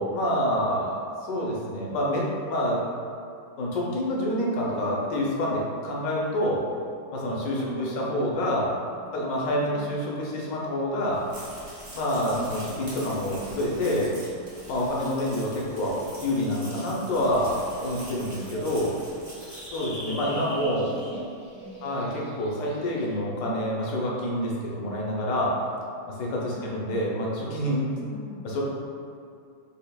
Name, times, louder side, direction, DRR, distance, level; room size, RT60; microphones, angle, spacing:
voice 1, 0.0-2.8 3.6-6.6 7.1-8.8 9.1-11.2 11.9-14.1 14.7-17.6 17.8-18.9 19.7-20.9 21.8-25.5 26.2-27.9 28.4-28.6, equal, 70° left, -3 dB, 0.8 m, -27 dB
voice 2, 7.5-8.1 9.6-10.0 12.2-12.7 20.7-21.2 21.5-21.9 26.4-26.8 28.0-28.5, equal, 70° right, -14 dB, 1.6 m, -41 dB
sound 1, 11.1-20.6, right 1 dB, 45° right, 0.7 m, -44 dB
sound 2, 17.7-23.1, right 1 dB, 10° right, 0.4 m, -43 dB
5.4 x 2.0 x 2.2 m, 2.4 s
omnidirectional pair, 2.0 m